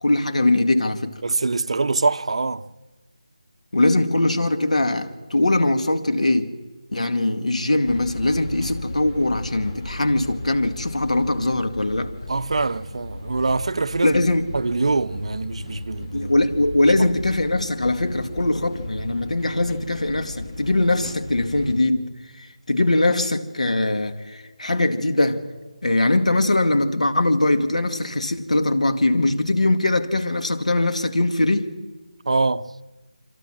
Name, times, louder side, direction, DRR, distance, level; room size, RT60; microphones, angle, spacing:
voice 1, 0.0-1.2 3.7-6.5 6.9-12.1 14.0-14.5 16.1-22.1 22.3-25.4 25.8-31.7, left 2 dB, 85° left, 2.2 m, -21 dB
voice 2, 1.2-2.7 12.3-14.2 14.5-16.3 32.3-32.7, right 3 dB, 60° right, 0.9 m, -24 dB
sound 1, 7.9-21.9, left 2 dB, 40° left, 2.6 m, -36 dB
27.5 x 26.5 x 6.3 m
figure-of-eight pair, 170°, 4 cm